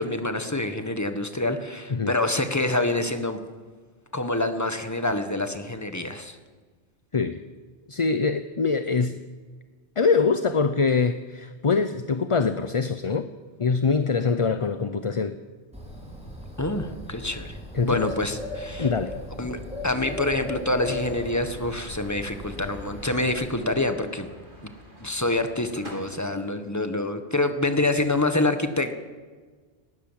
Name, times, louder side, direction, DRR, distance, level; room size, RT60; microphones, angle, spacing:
voice 1, 0.0-3.4 4.1-6.4 16.6-17.6 17.8-18.9 19.4-24.3 24.6-24.7 25.0-29.0, left 2 dB, 15° left, 8 dB, 1.6 m, -26 dB
voice 2, 7.9-9.2 10.0-13.3 13.6-15.4 17.7-18.1 18.8-19.1, left 5 dB, 35° left, 10 dB, 0.7 m, -24 dB
Bird, 15.7-23.5, left 1 dB, 5° right, 5.1 m, -37 dB
sound 1, 20.8-26.2, equal, 50° right, 3.3 m, -46 dB
19.0 x 19.0 x 7.6 m, 1.5 s
omnidirectional pair, 1.1 m